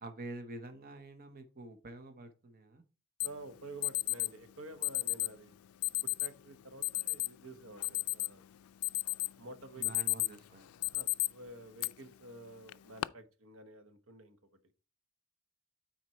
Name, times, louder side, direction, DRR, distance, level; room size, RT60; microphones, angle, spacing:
voice 1, 0.0-2.8 9.8-10.9, right 2 dB, 45° right, 7 dB, 0.9 m, -47 dB
Alarm, 3.2-3.3 3.8-4.3 4.8-5.3 5.8-6.3 6.8-7.3 7.7-8.4 8.8-9.3 9.7-10.4 10.8-11.3 11.8-11.9 12.7-13.1, left 22 dB, 85° left, 0.3 m, -32 dB
voice 2, 3.2-5.5 6.2-8.4 9.4-10.1 10.9-14.4, right 2 dB, 70° right, 9 dB, 1.2 m, -50 dB
9.1 x 4.4 x 4.4 m, 0.33 s
head